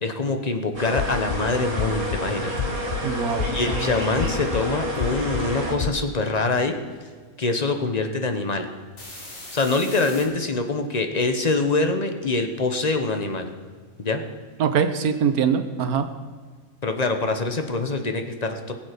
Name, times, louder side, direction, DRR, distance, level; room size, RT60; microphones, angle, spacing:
voice 1, 0.0-2.5 3.5-6.7 7.4-8.7 9.5-13.5 14.0-14.2 16.8-18.7, left 3 dB, 30° left, 6 dB, 1.1 m, -24 dB
sound 1, 0.7-5.7, equal, 60° right, 2.6 m, -30 dB
sound 2, 1.0-1.4 1.8-2.2 2.6-3.0 3.4-3.8 4.2-4.6 5.0-5.4 5.8-6.0, left 8 dB, 75° left, 0.4 m, -28 dB
voice 2, 3.0-3.5 3.7-3.9 14.6-16.1, right 7 dB, 90° right, 8 dB, 1.5 m, -23 dB
sound 3, 9.0-10.2 12.7-14.8 15.1-15.2, left 2 dB, 50° left, 2.7 m, -43 dB
20.5 x 7.4 x 5.2 m, 1.5 s
omnidirectional pair, 1.5 m